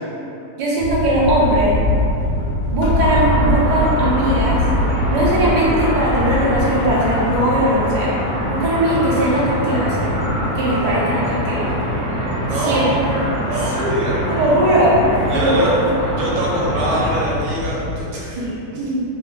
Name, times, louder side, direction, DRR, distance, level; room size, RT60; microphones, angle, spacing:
voice 1, 0.6-1.7 2.7-4.6 5.1-8.1 8.5-10.1 10.5-11.7 12.5-12.9 13.6-15.0 15.3-15.7 18.4-18.5 18.7-19.0, right 1 dB, 70° right, -8 dB, 0.4 m, -19 dB
sound 1, 0.8-18.0, left 1 dB, 70° left, 1.0 m, -24 dB
sound 2, 3.0-17.2, equal, 20° right, 0.9 m, -25 dB
voice 2, 12.4-12.9 13.4-14.2 15.3-15.7 16.2-18.4 18.7-18.8, right 1 dB, 85° right, -6 dB, 1.3 m, -24 dB
2.5 x 2.4 x 3.1 m, 2.8 s
omnidirectional pair, 1.7 m